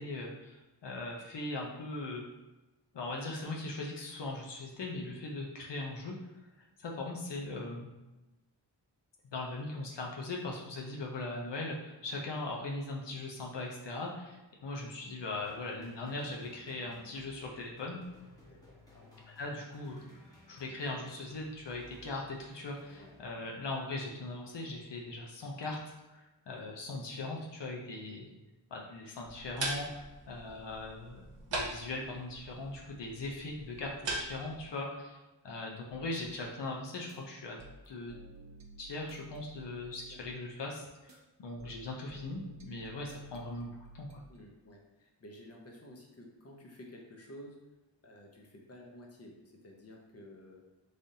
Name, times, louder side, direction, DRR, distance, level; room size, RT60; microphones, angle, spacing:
voice 1, 0.0-2.2 2.9-6.1 6.6-7.9 9.3-18.0 19.3-20.0 20.5-28.3 28.7-35.2 35.4-37.6 37.9-38.1 38.8-44.2, left 2 dB, 75° left, -1 dB, 0.7 m, -40 dB
sound 1, 15.5-23.8, left 1 dB, 10° left, 0.9 m, -59 dB
voice 2, 18.4-19.2 23.0-23.1 26.5-26.6 40.1-40.2 44.3-47.6 48.0-50.6, left 1 dB, 35° left, 0 dB, 0.7 m, -52 dB
sound 2, 29.2-34.7, right 2 dB, 80° right, 0.9 m, -41 dB
sound 3, 36.9-37.2 37.6-40.4 40.9-41.2 41.6-44.4, right 2 dB, 40° right, 0.6 m, -53 dB
3.8 x 3.3 x 2.7 m, 1.1 s
wide cardioid pair, 90°, 43 cm